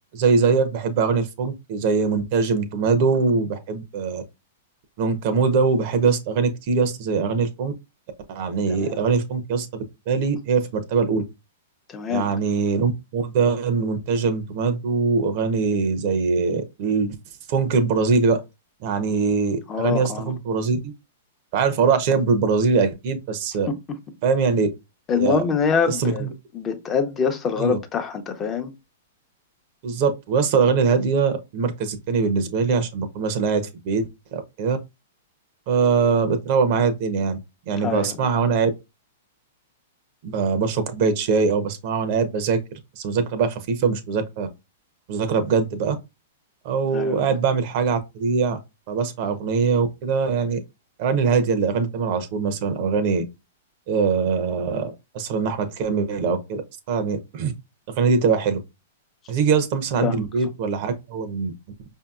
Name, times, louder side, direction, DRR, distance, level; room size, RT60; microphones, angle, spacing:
voice 1, 0.1-4.2 5.0-7.7 8.3-9.7 10.1-11.2 12.1-17.2 17.5-18.4 18.8-20.9 21.5-23.7 24.2-24.7 25.2-25.4 25.9-26.3 27.6-27.8 29.8-34.8 35.7-37.4 37.7-38.7 40.2-44.5 45.1-46.0 46.6-48.6 48.9-50.6 51.0-53.2 53.9-56.6 56.9-57.5 57.9-58.6 59.3-61.5, right 5 dB, 50° right, 0.7 m, -22 dB
voice 2, 11.9-12.3 19.7-20.3 23.7-24.0 25.1-26.3 26.5-28.7 37.8-38.3 46.9-47.3 60.0-60.3, left 6 dB, 25° left, 0.7 m, -25 dB
5.0 x 2.7 x 2.4 m
hypercardioid pair, 130°, 0 cm